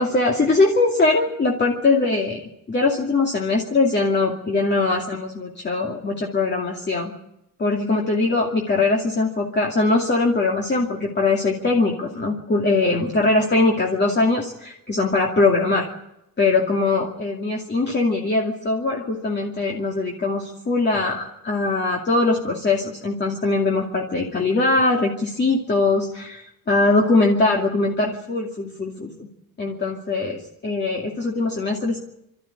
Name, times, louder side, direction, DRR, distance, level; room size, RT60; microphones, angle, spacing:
voice 1, 0.0-7.1 7.6-15.9 16.4-29.3 29.6-32.0, left 3 dB, 30° left, -1 dB, 2.5 m, -21 dB
27.0 x 13.5 x 9.8 m, 0.86 s
wide cardioid pair, 160°, 34 cm